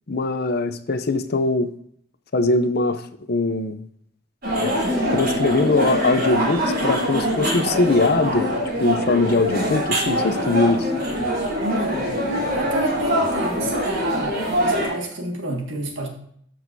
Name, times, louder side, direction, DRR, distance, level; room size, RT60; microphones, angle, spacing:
voice 1, 0.1-1.7 2.3-3.0 3.3-3.8 4.6-4.7 5.1-10.9, left 3 dB, 50° left, 10 dB, 0.6 m, -21 dB
sound 1, 4.4-14.9, equal, 45° right, 3.6 m, -23 dB
voice 2, 11.6-12.1 12.5-16.1, right 2 dB, 65° right, 2 dB, 1.8 m, -28 dB
13.0 x 6.2 x 2.7 m, 0.66 s
head